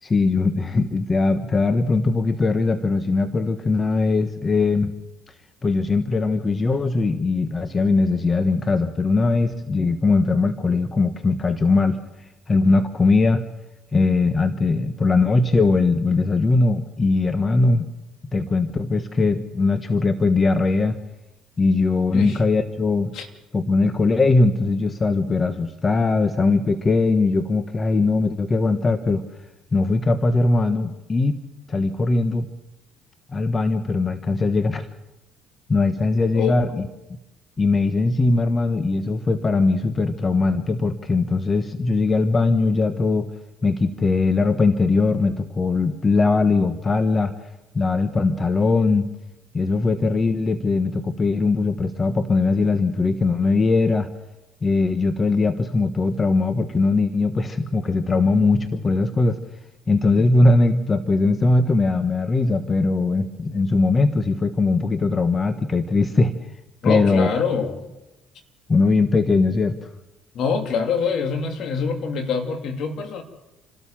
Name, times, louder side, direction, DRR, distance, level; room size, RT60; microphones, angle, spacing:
voice 1, 0.0-4.9 5.6-13.4 13.9-17.9 18.3-21.0 21.6-23.1 23.5-29.2 29.7-31.3 31.7-32.5 33.3-34.9 35.7-36.7 37.6-43.3 43.6-47.3 47.7-49.1 49.5-54.1 54.6-59.4 59.9-66.3 66.8-67.3 68.7-69.9, left 3 dB, 30° left, 9 dB, 1.3 m, -20 dB
voice 2, 36.3-36.8 66.8-67.8 70.3-73.2, left 5 dB, 65° left, 5 dB, 2.9 m, -25 dB
28.0 x 12.5 x 7.4 m, 0.96 s
supercardioid pair, 70°, 0 cm